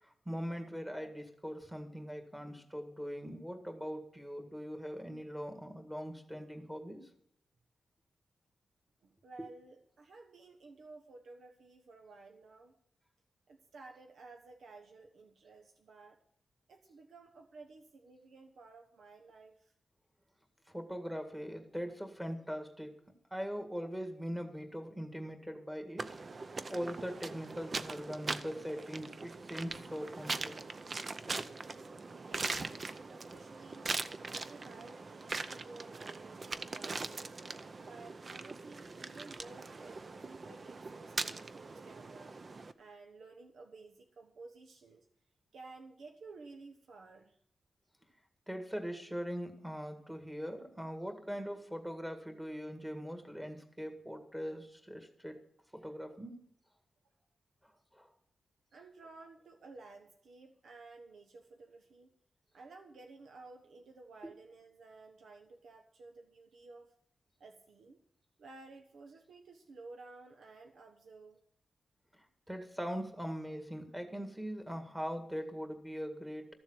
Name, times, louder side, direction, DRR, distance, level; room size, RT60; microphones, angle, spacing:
voice 1, 0.0-7.1 20.7-22.9 23.3-26.1 26.7-30.5 48.5-55.4 55.7-56.3 57.9-58.1 72.2-76.5, equal, 5° right, 6 dB, 1.8 m, -41 dB
voice 2, 9.0-12.7 13.5-16.2 16.7-19.7 32.1-33.9 34.3-37.3 37.9-42.4 42.8-45.1 45.5-47.4 58.7-62.1 62.5-66.9 67.4-68.0 68.4-71.4, right 3 dB, 85° right, 3 dB, 1.2 m, -54 dB
sound 1, 26.0-42.7, right 3 dB, 35° right, 0.6 m, -41 dB
13.5 x 7.2 x 7.8 m, 0.69 s
wide cardioid pair, 155°, 0 cm